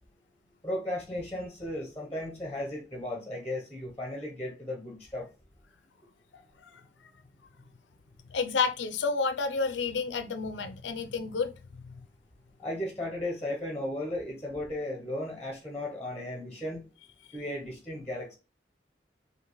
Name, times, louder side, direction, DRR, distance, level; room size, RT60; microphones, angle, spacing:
voice 1, 0.6-5.3 12.6-16.8 17.3-18.4, left 1 dB, 10° left, 0.9 m, -35 dB
voice 2, 6.3-6.8 8.3-12.0, left 4 dB, 85° left, 0.5 m, -31 dB
5.0 x 2.8 x 3.1 m
head